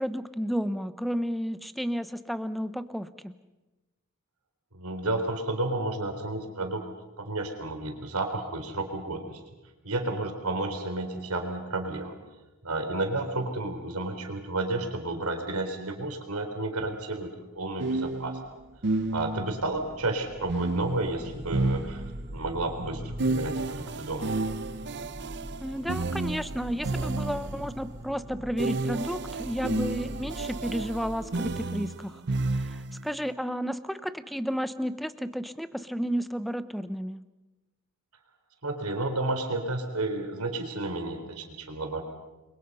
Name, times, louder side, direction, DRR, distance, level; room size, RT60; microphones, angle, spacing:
voice 1, 0.0-3.3 25.6-32.2 32.5-37.2, equal, ahead, 12 dB, 0.9 m, -32 dB
voice 2, 4.7-6.8 7.2-9.4 9.8-12.2 12.6-18.4 19.1-22.0 22.3-24.3 38.6-42.0, right 2 dB, 75° right, 5 dB, 4.1 m, -31 dB
sound 1, 16.8-16.9 17.8-19.6 20.5-22.4 23.2-27.7 28.6-33.1, right 2 dB, 55° right, 0.8 m, -31 dB
sound 2, 18.3-31.6, equal, 30° right, 1.4 m, -43 dB
29.5 x 23.0 x 5.6 m, 1.1 s
head